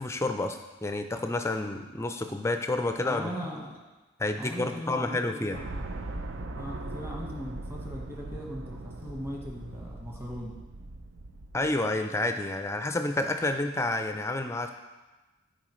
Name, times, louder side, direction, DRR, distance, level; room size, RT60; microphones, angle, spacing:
voice 1, 0.0-3.3 4.2-5.6 11.5-14.7, left 2 dB, 15° left, 6 dB, 0.4 m, -29 dB
voice 2, 3.0-3.8 4.4-5.8 6.6-10.6, equal, 10° right, -2 dB, 1.2 m, -39 dB
sound 1, 5.5-11.7, right 2 dB, 70° right, 0.5 m, -40 dB
14.5 x 4.9 x 3.1 m, 1.2 s
head